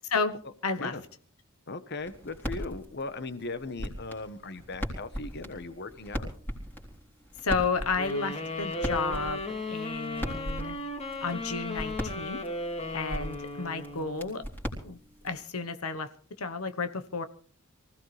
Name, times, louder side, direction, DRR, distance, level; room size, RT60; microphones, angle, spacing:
voice 1, 0.6-0.9 7.4-9.4 9.7-10.8 11.2-12.4 12.9-14.4 14.8-15.0 15.2-16.1 16.4-17.3, left 4 dB, 75° left, 10 dB, 1.1 m, -31 dB
voice 2, 1.7-6.3, left 3 dB, 50° left, 11 dB, 1.1 m, -38 dB
sound 1, 2.0-15.4, equal, 10° left, 3.6 m, -39 dB
sound 2, 8.0-14.4, left 2 dB, 30° left, 2.4 m, -36 dB
24.0 x 16.0 x 3.3 m, 0.43 s
head